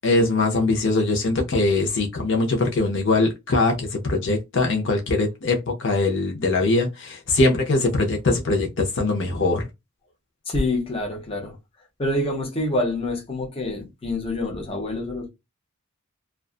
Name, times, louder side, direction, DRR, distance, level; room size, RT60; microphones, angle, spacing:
voice 1, 0.0-9.7, left 2 dB, 60° left, 0.7 m, -22 dB
voice 2, 10.5-11.6 12.0-15.3, left 2 dB, 25° left, 0.8 m, -26 dB
2.5 x 2.2 x 2.4 m
head